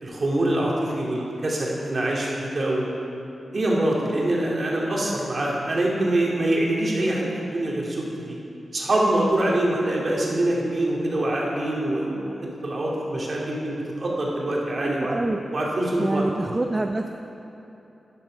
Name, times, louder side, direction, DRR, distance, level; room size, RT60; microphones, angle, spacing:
voice 1, 0.0-2.9 3.5-8.4 8.7-12.3 12.6-15.1 15.5-16.2, right 1 dB, 45° right, -3 dB, 2.3 m, -24 dB
voice 2, 14.8-15.4 16.0-17.1, right 2 dB, 25° right, 5 dB, 0.4 m, -26 dB
12.5 x 9.9 x 5.1 m, 2.9 s
wide cardioid pair, 125°, 0 cm